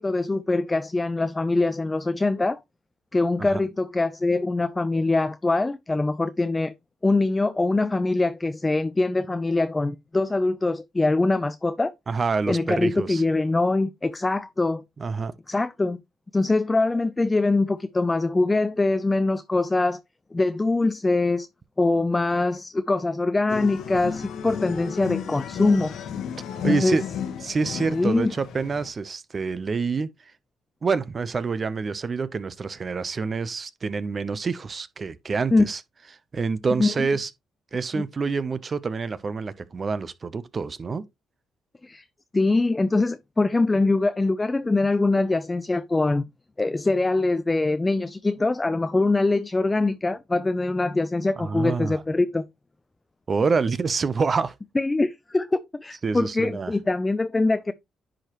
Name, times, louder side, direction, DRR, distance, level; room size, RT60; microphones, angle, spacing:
voice 1, 0.0-2.6 3.1-6.7 7.0-11.9 12.5-14.8 15.5-16.0 16.3-20.0 20.3-21.5 21.8-25.9 26.7-27.0 27.9-28.3 35.5-35.7 36.8-37.1 37.9-38.0 41.8-42.0 42.3-46.2 46.6-52.4 54.8-57.7, left 2 dB, 20° left, 0.4 m, -23 dB
voice 2, 12.1-13.2 15.0-15.3 26.6-27.0 27.4-30.1 30.8-35.8 36.3-37.3 37.7-41.0 51.4-52.0 53.3-54.5 56.0-56.7, right 4 dB, 40° right, 0.7 m, -27 dB
sound 1, 23.5-28.9, left 8 dB, 75° left, 1.2 m, -33 dB
10.0 x 5.0 x 3.0 m
cardioid pair, 90°, 0 cm